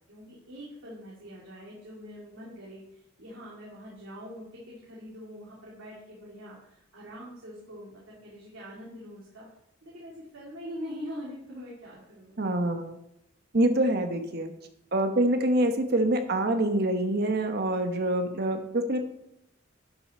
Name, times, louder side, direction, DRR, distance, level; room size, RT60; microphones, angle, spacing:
voice 1, 0.1-9.5 9.8-12.4, equal, 90° right, -6 dB, 2.7 m, -43 dB
voice 2, 12.4-13.0 13.5-14.5 14.9-19.0, right 1 dB, 50° right, 6 dB, 1.1 m, -25 dB
11.5 x 6.8 x 4.3 m, 0.80 s
head